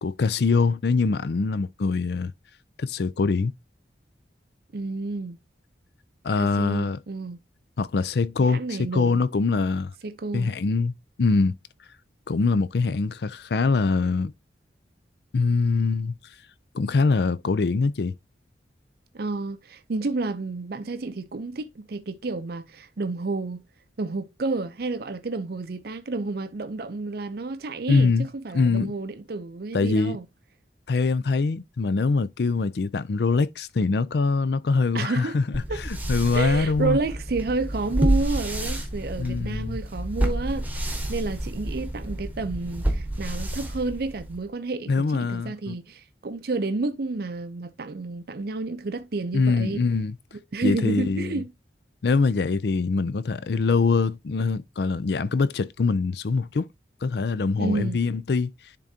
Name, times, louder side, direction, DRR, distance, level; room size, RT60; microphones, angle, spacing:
voice 1, 0.0-2.3 2.8-3.5 6.2-7.0 7.8-9.9 10.3-10.9 11.2-11.6 12.3-14.3 15.3-16.2 16.7-18.1 27.9-28.3 28.5-28.9 29.7-30.2 30.9-37.0 39.2-39.8 44.9-45.8 49.3-50.1 50.6-51.4 52.0-56.7 57.0-58.5, left 4 dB, 60° left, 0.4 m, -23 dB
voice 2, 4.7-5.4 6.4-7.4 8.4-9.2 10.0-10.6 19.1-23.6 24.0-30.3 34.9-35.4 35.7-35.8 36.3-49.8 50.5-51.5 57.6-58.0, right 3 dB, 55° right, 0.5 m, -30 dB
sound 1, 35.5-44.4, right 1 dB, 10° right, 1.1 m, -29 dB
10.5 x 3.7 x 2.7 m
head